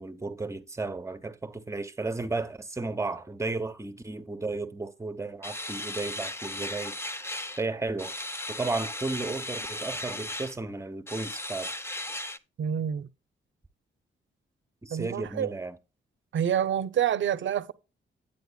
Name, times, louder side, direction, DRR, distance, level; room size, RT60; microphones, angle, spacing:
voice 1, 0.0-7.0 7.6-8.1 8.5-11.7 14.8-15.8, right 3 dB, 15° right, 1.0 m, -34 dB
sound 1, 5.4-7.7 8.0-10.6 11.1-12.4, left 1 dB, 10° left, 0.7 m, -36 dB
voice 2, 12.6-13.1 14.9-15.5 16.3-17.7, right 9 dB, 65° right, 0.7 m, -27 dB
9.3 x 8.9 x 2.3 m
cardioid pair, 90°, 21 cm